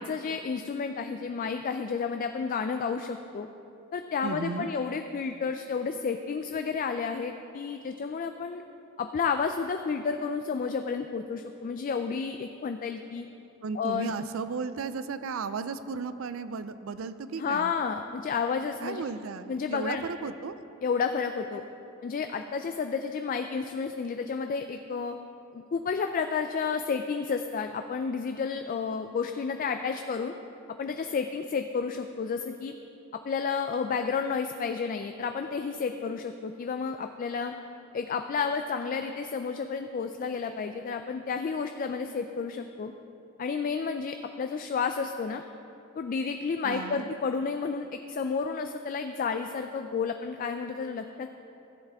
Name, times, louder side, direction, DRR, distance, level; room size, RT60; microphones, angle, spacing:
voice 1, 0.0-3.5 3.9-8.6 9.0-13.3 13.7-14.1 17.4-19.0 19.5-20.1 20.8-21.6 22.0-25.2 25.5-30.3 30.8-32.8 33.2-37.5 37.9-42.9 43.4-45.4 46.0-51.3, left 5 dB, 40° left, 6 dB, 0.3 m, -31 dB
voice 2, 4.2-4.7 13.6-17.7 18.8-20.6 46.6-47.1, right 5 dB, 75° right, 13 dB, 0.4 m, -35 dB
14.5 x 8.0 x 3.5 m, 2.9 s
head